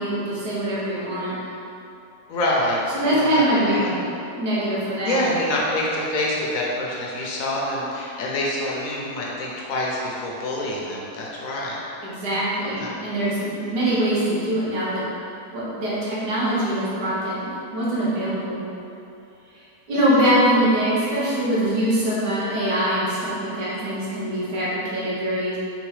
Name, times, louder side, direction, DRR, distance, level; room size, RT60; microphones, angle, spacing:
voice 1, 0.0-1.3 2.9-4.0 4.4-5.2 12.0-15.0 15.5-18.6 19.9-25.6, right 1 dB, 90° right, -8 dB, 1.6 m, -23 dB
voice 2, 2.3-3.9 5.0-11.8 12.7-13.0 13.9-14.0, left 1 dB, 65° left, -4 dB, 0.9 m, -26 dB
3.8 x 3.7 x 3.1 m, 2.8 s
omnidirectional pair, 1.7 m